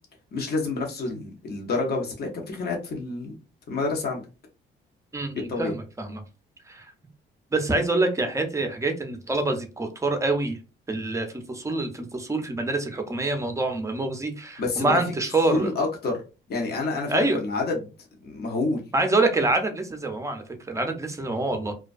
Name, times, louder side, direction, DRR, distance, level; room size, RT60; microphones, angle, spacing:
voice 1, 0.3-3.3 3.7-4.2 5.5-5.7 14.6-15.0 15.5-16.2 16.5-17.9 18.2-18.8, left 3 dB, 55° left, 1 dB, 0.8 m, -28 dB
voice 2, 5.1-6.2 6.7-6.9 7.5-10.6 10.9-15.7 17.1-17.4 18.9-21.7, right 2 dB, 15° right, 6 dB, 0.5 m, -26 dB
2.2 x 2.2 x 2.4 m, 0.31 s
cardioid pair, 90°, 20 cm